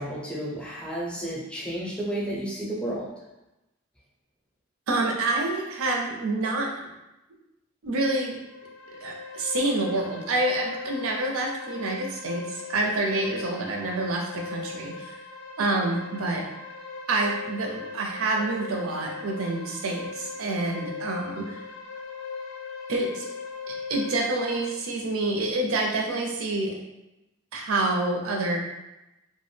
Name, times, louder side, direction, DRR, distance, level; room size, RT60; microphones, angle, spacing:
voice 1, 0.0-3.1, right 1 dB, 5° left, -5 dB, 0.5 m, -32 dB
voice 2, 4.9-6.8 7.8-8.4 9.0-15.1 15.6-16.4 17.1-21.6 22.9-23.3 23.7-26.7 27.5-28.6, right 2 dB, 90° right, 1 dB, 0.5 m, -27 dB
sound 1, 8.4-24.7, left 5 dB, 75° left, 0.3 m, -39 dB
2.2 x 2.1 x 3.1 m, 0.96 s
head